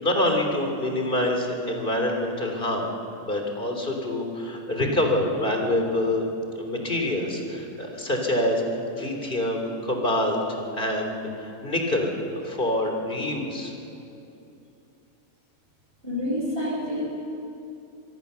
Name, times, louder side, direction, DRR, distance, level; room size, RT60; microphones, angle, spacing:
voice 1, 0.0-2.9 3.2-6.2 6.6-8.6 9.0-10.4 10.7-13.7, left 1 dB, 40° left, 2 dB, 3.5 m, -26 dB
voice 2, 16.0-17.0, left 1 dB, 40° right, -3 dB, 5.4 m, -28 dB
25.5 x 22.5 x 6.9 m, 2.8 s
omnidirectional pair, 1.4 m